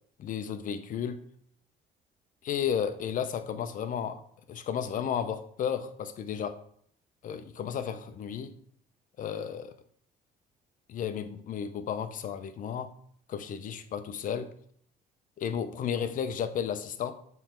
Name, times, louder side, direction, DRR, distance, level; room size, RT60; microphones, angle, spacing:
voice 1, 0.2-1.2 2.4-4.2 4.5-6.6 7.2-8.5 9.2-9.7 10.9-12.9 13.3-14.5 15.4-17.1, left 8 dB, 50° left, 10 dB, 0.7 m, -33 dB
7.2 x 3.4 x 4.4 m, 0.63 s
cardioid pair, 110°, 17 cm